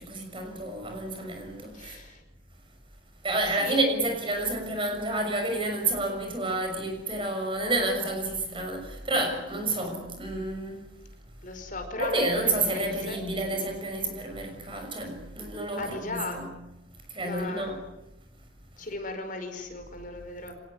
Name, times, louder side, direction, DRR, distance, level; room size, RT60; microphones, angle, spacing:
voice 1, 0.0-2.0 3.2-10.9 12.0-16.5 17.1-17.8, right 2 dB, 30° right, 6.4 m, -30 dB
voice 2, 1.7-2.2 3.6-3.8 11.4-13.2 13.5-13.7 15.8-16.5 17.2-17.8 18.8-20.5, left 2 dB, 50° left, 5.1 m, -36 dB
25.0 x 19.5 x 9.8 m
head